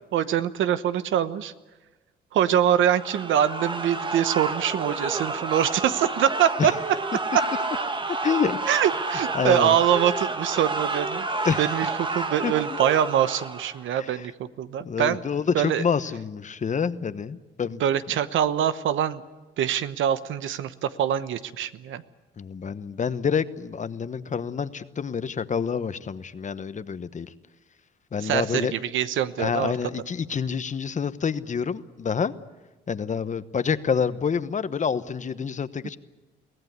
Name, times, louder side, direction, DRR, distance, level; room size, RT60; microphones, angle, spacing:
voice 1, 0.0-1.5 2.3-6.7 7.3-7.4 8.7-11.3 11.6-14.3 14.6-15.2 15.5-15.8 17.8-19.2 19.6-22.0 28.2-29.7, right 10 dB, 75° right, 13 dB, 1.0 m, -24 dB
sound 1, 2.9-13.9, right 3 dB, 25° right, 1.4 m, -30 dB
voice 2, 8.1-8.6 9.3-9.8 11.4-11.7 12.4-12.5 13.9-14.3 14.8-17.8 22.4-27.3 28.1-28.7 29.4-32.3 32.9-36.0, left 6 dB, 40° left, 13 dB, 1.0 m, -27 dB
23.5 x 17.0 x 9.4 m, 1.2 s
cardioid pair, 90°, 20 cm